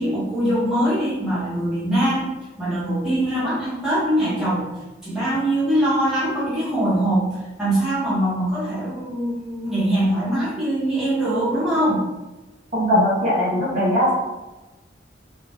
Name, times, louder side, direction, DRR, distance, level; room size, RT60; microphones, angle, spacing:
voice 1, 0.0-2.3 2.6-4.7 5.0-12.0, right 1 dB, 5° right, -10 dB, 0.9 m, -22 dB
voice 2, 12.7-14.1, equal, 40° right, -7 dB, 1.1 m, -19 dB
2.8 x 2.4 x 3.3 m, 1.1 s
head